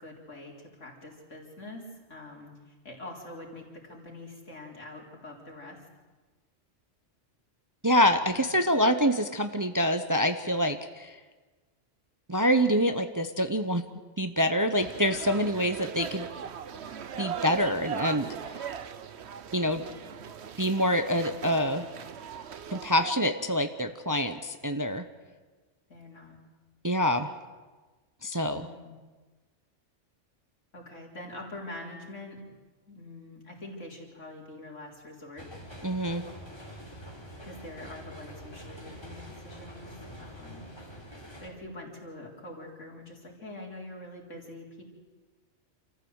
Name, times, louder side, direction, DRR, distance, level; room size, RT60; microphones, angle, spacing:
voice 1, 0.0-5.8 8.2-8.5 25.9-26.4 28.5-28.9 30.7-32.4 32.9-35.5 37.4-40.7 41.4-44.8, left 1 dB, 75° left, -1 dB, 4.3 m, -44 dB
voice 2, 7.8-11.1 12.3-13.8 14.2-16.3 17.2-18.3 19.5-19.8 20.6-21.9 22.7-25.0 26.8-27.3 28.2-28.7 35.8-36.2, equal, 20° right, 8 dB, 0.7 m, -26 dB
sound 1, 14.8-23.1, right 7 dB, 60° right, 1.1 m, -39 dB
sound 2, 35.4-41.5, equal, 20° left, 3.8 m, -45 dB
27.5 x 14.5 x 8.1 m, 1.3 s
omnidirectional pair, 1.3 m